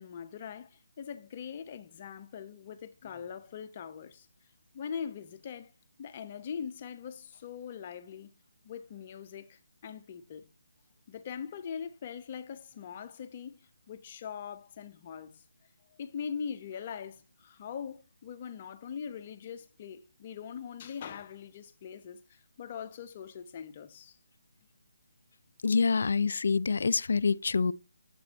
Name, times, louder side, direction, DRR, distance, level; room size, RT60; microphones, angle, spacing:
voice 1, 0.0-4.3 4.7-5.7 6.0-8.3 8.6-10.4 11.1-13.6 13.9-15.3 15.9-24.2, left 7 dB, 35° left, 0.7 m, -42 dB
voice 2, 25.6-27.7, left 5 dB, 60° left, 0.3 m, -26 dB
7.6 x 4.2 x 4.2 m
figure-of-eight pair, 155°, 0 cm